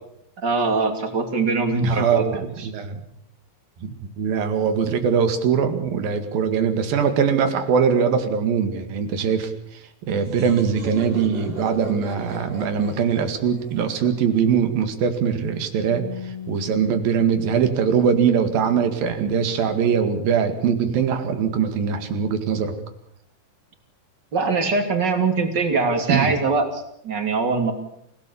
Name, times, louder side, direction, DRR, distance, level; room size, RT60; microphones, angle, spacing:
voice 1, 0.4-2.7 24.3-27.7, right 4 dB, 30° right, 5 dB, 3.2 m, -22 dB
voice 2, 1.8-3.0 3.8-9.5 10.1-22.7 26.1-26.3, right 7 dB, 85° right, 8 dB, 3.9 m, -22 dB
sound 1, 10.2-14.8, equal, 65° right, 8.5 m, -36 dB
Bass guitar, 15.9-22.2, left 8 dB, 75° left, 6.5 m, -41 dB
28.0 x 17.0 x 7.1 m, 0.75 s
omnidirectional pair, 4.0 m